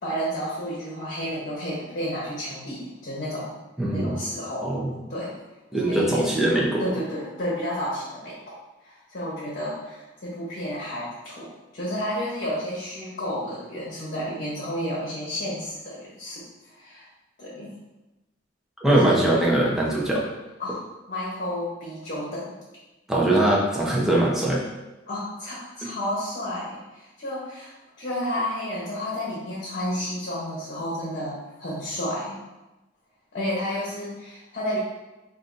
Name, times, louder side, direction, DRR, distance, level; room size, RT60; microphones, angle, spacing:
voice 1, 0.0-3.6 3.8-4.7 5.1-5.3 5.8-6.3 6.8-8.4 8.8-17.0 17.4-17.7 18.9-19.3 20.6-20.8 21.1-22.6 25.1-32.4 33.3-34.8, equal, 55° left, -6 dB, 0.9 m, -31 dB
voice 2, 3.8-4.2 4.6-4.9 5.7-6.8 18.8-20.3 23.1-24.6 25.8-25.9, right 1 dB, 5° right, -5 dB, 0.7 m, -21 dB
3.3 x 2.5 x 3.9 m, 1.0 s
head